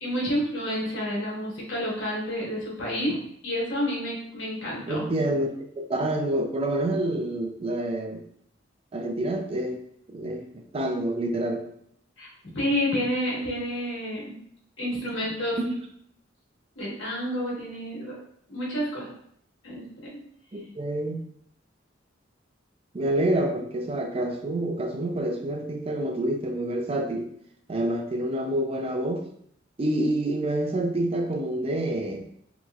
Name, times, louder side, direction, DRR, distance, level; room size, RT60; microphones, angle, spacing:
voice 1, 0.0-3.2 3.4-5.0 12.2-14.3 14.8-15.6 16.8-18.1 18.5-19.1 19.6-20.2, equal, 75° left, -5 dB, 1.3 m, -29 dB
voice 2, 4.9-5.5 5.8-8.2 8.9-9.8 10.1-11.6 15.0-15.1 15.7-15.8 20.5-21.2 22.9-27.3 27.7-29.2 29.8-32.2, right 1 dB, 30° right, 3 dB, 0.4 m, -27 dB
3.0 x 3.0 x 2.3 m, 0.67 s
head